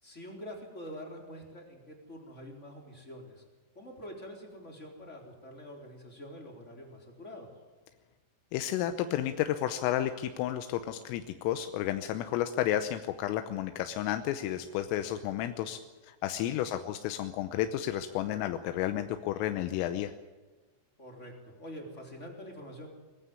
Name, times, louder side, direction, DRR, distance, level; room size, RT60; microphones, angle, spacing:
voice 1, 0.0-3.4 3.7-7.5 16.6-16.8 21.0-22.9, equal, 15° left, 1 dB, 3.4 m, -46 dB
voice 2, 8.5-20.1, left 12 dB, 85° left, 9 dB, 3.5 m, -32 dB
21.5 x 15.0 x 9.6 m, 1.3 s
omnidirectional pair, 5.8 m